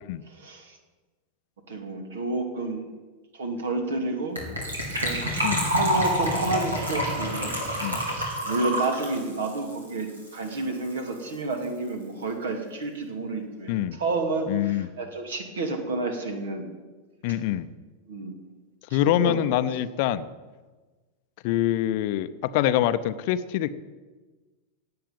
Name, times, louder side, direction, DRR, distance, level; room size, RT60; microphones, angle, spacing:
voice 1, 0.3-0.8 1.7-2.9 3.3-4.4 5.0-5.3 5.7-7.5 8.4-16.7 18.1-18.4 18.9-19.4, right 2 dB, 60° right, 6 dB, 2.5 m, -30 dB
Gurgling / Trickle dribble / Fill (with liquid), 4.4-10.6 10.8-10.9 11.1-11.3 11.6-11.7, right 1 dB, 80° right, 4.4 m, -28 dB
voice 2, 14.5-14.9 17.2-17.7 18.9-20.3 21.4-23.7, left 12 dB, 50° left, 13 dB, 0.7 m, -25 dB
17.5 x 7.8 x 8.9 m, 1.3 s
figure-of-eight pair, 90°, 0 cm